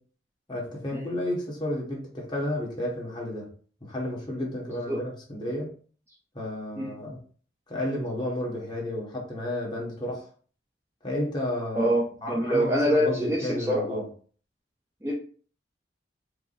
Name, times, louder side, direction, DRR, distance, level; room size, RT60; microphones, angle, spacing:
voice 1, 0.5-3.5 3.8-5.7 6.3-7.2 7.7-10.3 11.0-11.9 12.2-14.0, left 1 dB, 25° left, -3 dB, 1.3 m, -32 dB
voice 2, 11.7-14.0 15.0-15.1, equal, 15° right, -3 dB, 0.6 m, -25 dB
4.7 x 2.2 x 4.0 m, 0.42 s
head